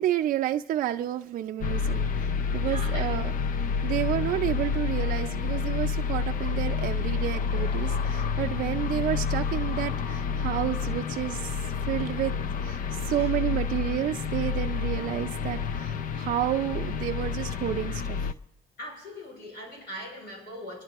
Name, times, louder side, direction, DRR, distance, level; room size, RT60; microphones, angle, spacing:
voice 1, 0.0-3.3 3.8-12.3 12.6-18.3, right 12 dB, 55° right, 4 dB, 0.5 m, -30 dB
sound 1, 1.6-18.3, left 5 dB, 55° left, 0.5 m, -29 dB
voice 2, 2.6-3.2 13.1-13.5 18.8-20.8, equal, 75° left, -1 dB, 6.6 m, -41 dB
26.5 x 11.0 x 3.0 m, 0.98 s
cardioid pair, 110°, 17 cm